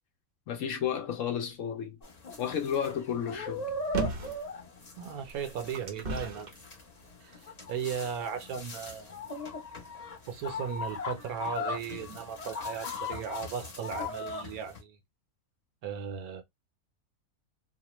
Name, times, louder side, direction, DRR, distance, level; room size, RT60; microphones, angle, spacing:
voice 1, 0.5-2.0 2.4-3.7, left 8 dB, 65° left, 1.0 m, -32 dB
sound 1, 2.0-14.8, left 3 dB, 35° left, 0.8 m, -39 dB
sound 2, 3.9-4.4 5.2-6.6 7.3-7.4, right 2 dB, 45° right, 0.6 m, -34 dB
voice 2, 5.0-6.5 7.2-7.4 7.7-9.2 10.3-15.0 15.8-16.4, right 7 dB, 80° right, 1.2 m, -36 dB
2.9 x 2.1 x 2.9 m
omnidirectional pair, 1.5 m